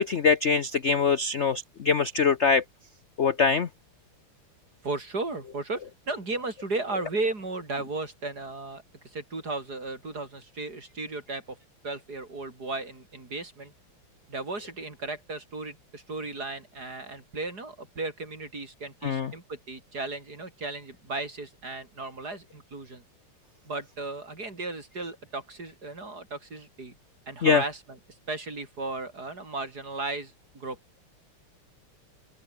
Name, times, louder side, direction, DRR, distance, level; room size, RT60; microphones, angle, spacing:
voice 1, 0.0-2.6 3.2-3.7 19.0-19.3 27.4-27.6, left 5 dB, 55° left, 0.8 m, -23 dB
voice 2, 4.8-11.6 11.8-13.7 14.3-23.0 23.7-27.0 27.3-27.8 28.3-30.8, right 3 dB, 45° right, 5.4 m, -35 dB
open air
omnidirectional pair, 2.4 m